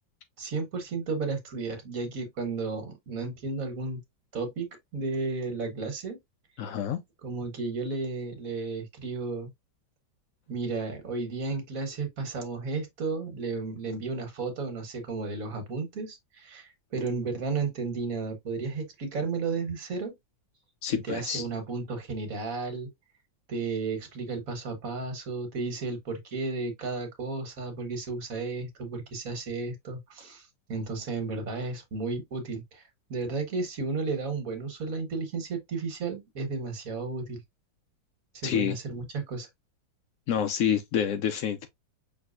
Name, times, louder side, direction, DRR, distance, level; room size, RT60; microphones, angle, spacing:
voice 1, 0.4-4.0 4.3-6.2 7.2-9.5 10.5-20.2 20.9-22.9 23.5-32.8 33.1-37.4 38.4-39.5, right 4 dB, 50° right, 1.7 m, -33 dB
voice 2, 6.6-7.0 20.8-21.4 38.4-38.8 40.3-41.7, left 9 dB, 75° left, 0.7 m, -28 dB
6.0 x 3.3 x 2.5 m
omnidirectional pair, 2.1 m